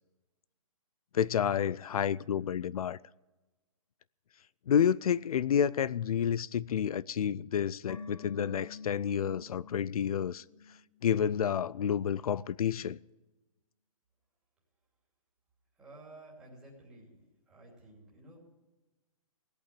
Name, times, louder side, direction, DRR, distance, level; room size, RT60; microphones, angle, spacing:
voice 1, 1.1-3.0 4.7-10.4 11.0-13.0, left 8 dB, 90° left, 0.4 m, -29 dB
sound 1, 7.9-11.2 11.5-11.6, left 4 dB, 75° left, 1.7 m, -48 dB
voice 2, 15.7-18.4, right 2 dB, 5° right, 2.7 m, -53 dB
17.0 x 8.7 x 8.4 m
hypercardioid pair, 175°, 18 cm